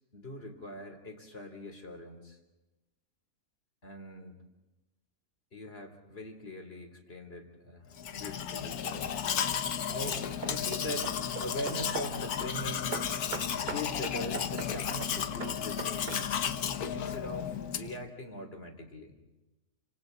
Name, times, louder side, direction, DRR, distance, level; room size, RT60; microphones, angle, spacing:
voice 1, 0.1-2.4 3.8-4.4 5.5-9.1 9.9-11.1 11.4-13.0 13.7-16.3 16.9-19.2, left 1 dB, 40° left, 4 dB, 3.6 m, -41 dB
Domestic sounds home sounds, 7.9-18.0, left 8 dB, 85° left, 1.6 m, -34 dB
Hammer / Wood, 8.7-9.2 9.8-12.3 12.9-16.6, right 6 dB, 40° right, 0.9 m, -43 dB
29.5 x 27.0 x 4.0 m, 1.1 s
omnidirectional pair, 1.6 m